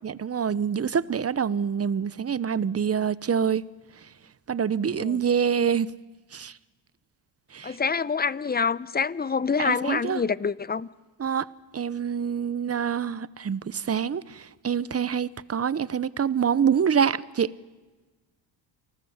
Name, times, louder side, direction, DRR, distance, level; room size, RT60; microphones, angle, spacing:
voice 1, 0.0-3.6 4.5-5.9 6.3-6.6 7.5-7.8 9.6-10.2 11.2-11.5 11.7-17.5, right 7 dB, 30° right, 0.9 m, -26 dB
voice 2, 7.6-10.9, left 5 dB, 20° left, 0.7 m, -26 dB
29.0 x 19.5 x 8.1 m
cardioid pair, 80°, 49 cm